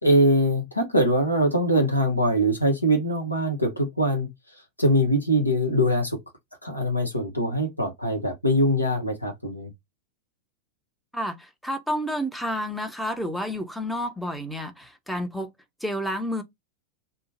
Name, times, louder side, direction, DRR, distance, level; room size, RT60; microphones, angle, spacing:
voice 1, 0.0-4.3 4.8-6.2 6.6-9.7, equal, 85° left, 0.8 m, -22 dB
voice 2, 11.1-15.5 15.8-16.4, equal, ahead, 0.6 m, -30 dB
2.6 x 2.1 x 2.8 m
figure-of-eight pair, 90°, 0 cm